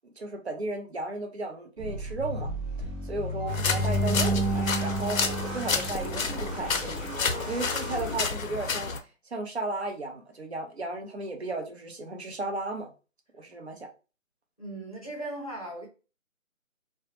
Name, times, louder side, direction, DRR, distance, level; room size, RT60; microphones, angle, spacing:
voice 1, 0.2-2.5 3.0-7.1 7.5-8.9 9.3-12.9 13.4-13.9, right 2 dB, 55° right, 0.5 m, -34 dB
sound 1, 1.8-8.2, equal, 25° right, 0.8 m, -36 dB
sound 2, 3.4-6.6, right 1 dB, 85° right, 0.8 m, -30 dB
sound 3, 3.5-9.0, left 5 dB, 85° left, 0.6 m, -31 dB
voice 2, 14.6-15.9, right 1 dB, 30° left, 0.5 m, -37 dB
2.1 x 2.1 x 2.9 m
figure-of-eight pair, 165°, 39 cm